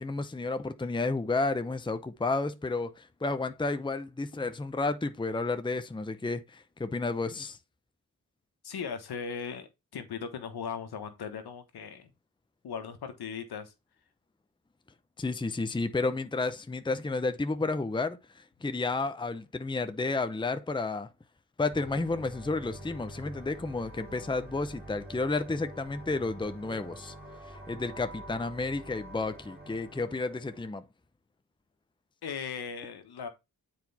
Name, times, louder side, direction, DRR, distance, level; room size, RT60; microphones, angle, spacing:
voice 1, 0.0-7.6 15.2-21.1 21.6-27.1 27.5-30.8, left 3 dB, 15° left, 0.7 m, -31 dB
voice 2, 8.6-12.1 12.6-13.7 32.2-33.3, left 6 dB, 90° left, 1.3 m, -38 dB
sound 1, 21.7-30.7, right 1 dB, 25° right, 2.9 m, -47 dB
7.6 x 4.6 x 4.2 m
cardioid pair, 50°, 37 cm